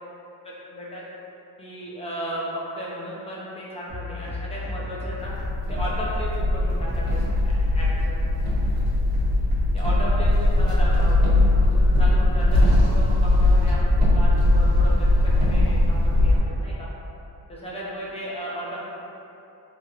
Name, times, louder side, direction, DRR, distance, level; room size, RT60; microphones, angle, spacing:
voice 1, 0.7-1.0 1.6-5.3 5.7-8.2 9.7-16.9 17.5-18.9, equal, 15° left, -7 dB, 0.5 m, -35 dB
sound 1, 3.9-9.9, left 3 dB, 50° right, 0.9 m, -34 dB
sound 2, 5.2-16.4, left 1 dB, 85° right, 0.7 m, -20 dB
3.0 x 2.8 x 2.4 m, 2.8 s
wide cardioid pair, 160°, 46 cm